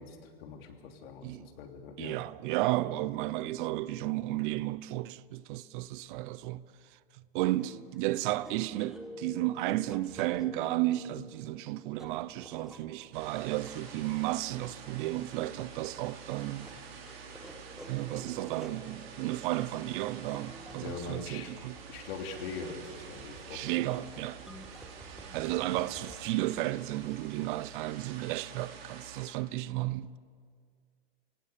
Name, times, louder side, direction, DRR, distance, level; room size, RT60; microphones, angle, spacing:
voice 1, 0.0-2.2 20.8-21.5 21.9-23.6, left 5 dB, 70° left, 3.2 m, -42 dB
voice 2, 2.0-16.7 17.9-21.8 23.5-24.4 25.3-30.2, right 16 dB, 55° right, 0.8 m, -33 dB
sound 1, 7.4-26.2, equal, ahead, 1.3 m, -51 dB
sound 2, 13.1-29.3, right 6 dB, 75° right, 5.3 m, -48 dB
29.5 x 17.5 x 6.9 m
supercardioid pair, 155°, 30 cm